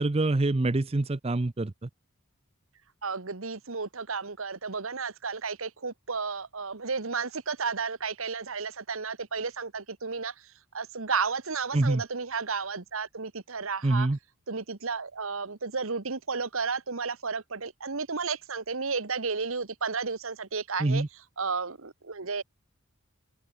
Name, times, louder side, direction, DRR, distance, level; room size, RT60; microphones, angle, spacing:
voice 1, 0.0-1.9 11.7-12.0 13.8-14.2 20.8-21.1, right 2 dB, 25° right, 0.6 m, -25 dB
voice 2, 3.0-10.3 10.7-14.1 14.5-21.0 21.4-22.4, right 5 dB, 75° right, 1.3 m, -32 dB
open air
head